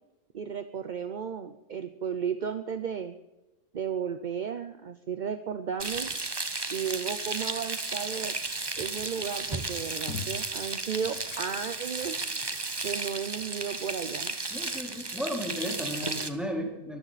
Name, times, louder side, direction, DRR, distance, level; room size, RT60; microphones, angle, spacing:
voice 1, 0.3-3.2 3.7-6.1 6.7-8.4 8.8-12.2 12.8-14.3, right 7 dB, 45° right, 9 dB, 0.6 m, -34 dB
Frying (food), 5.8-16.3, right 3 dB, 20° right, 0.8 m, -34 dB
sound 1, 9.5-10.5 11.0-12.3 13.4-13.5, left 6 dB, 80° left, 2.0 m, -43 dB
voice 2, 14.5-17.0, equal, ahead, 0 dB, 3.8 m, -34 dB
23.0 x 14.0 x 4.1 m, 1.0 s
omnidirectional pair, 1.5 m